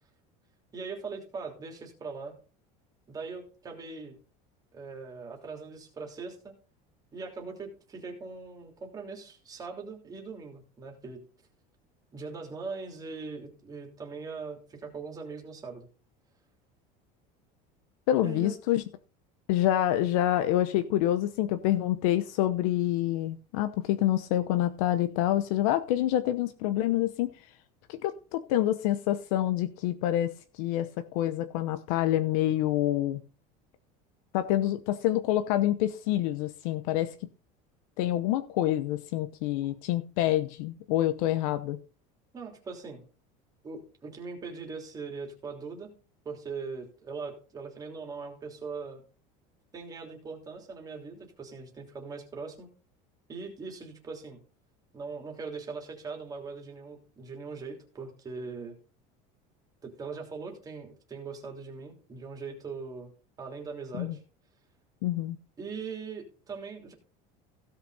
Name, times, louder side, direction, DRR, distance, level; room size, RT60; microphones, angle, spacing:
voice 1, 0.7-2.3 3.1-4.2 4.7-6.5 7.1-11.2 12.1-15.9 18.2-18.6 42.3-43.0 43.6-45.9 46.2-49.0 49.7-52.7 53.3-54.4 54.9-58.8 59.8-63.1 63.4-64.2 65.6-66.9, right 4 dB, 20° right, 3.3 m, -40 dB
voice 2, 18.1-18.8 19.5-27.3 27.9-33.2 34.3-37.1 38.0-41.8 64.0-64.2 65.0-65.4, left 13 dB, 80° left, 0.9 m, -27 dB
16.5 x 5.9 x 4.1 m
cardioid pair, 160°, 18 cm